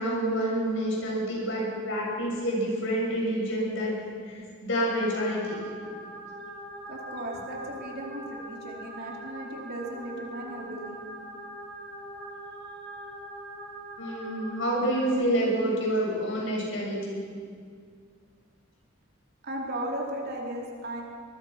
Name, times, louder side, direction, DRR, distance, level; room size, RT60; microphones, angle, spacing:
voice 1, 0.0-5.6 14.0-17.2, equal, 65° left, -2 dB, 7.4 m, -28 dB
sound 1, 5.0-15.1, right 1 dB, 15° left, 4.2 m, -42 dB
voice 2, 6.9-11.0 19.4-21.0, right 1 dB, 50° right, -1 dB, 4.2 m, -36 dB
23.5 x 21.5 x 6.1 m, 2.1 s
head